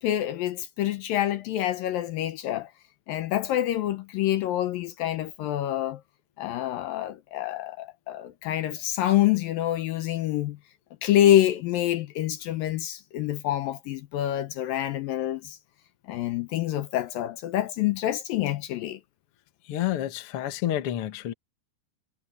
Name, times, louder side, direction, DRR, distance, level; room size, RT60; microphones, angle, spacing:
voice 1, 0.0-2.7 3.1-6.0 6.4-10.6 11.0-15.6 16.1-19.0, left 12 dB, 75° left, 2.4 m, -26 dB
voice 2, 19.7-21.3, left 12 dB, 55° left, 1.6 m, -29 dB
omnidirectional pair, 4.5 m